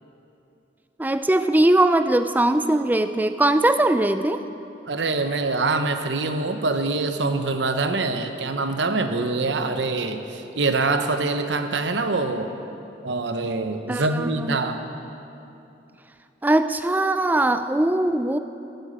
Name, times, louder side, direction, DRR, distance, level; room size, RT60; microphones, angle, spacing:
voice 1, 1.0-4.4 13.9-14.6 16.4-18.4, right 1 dB, 10° right, 10 dB, 0.4 m, -20 dB
voice 2, 4.9-12.5 13.0-14.8, right 3 dB, 75° right, 7 dB, 0.9 m, -24 dB
12.5 x 8.0 x 8.9 m, 2.8 s
head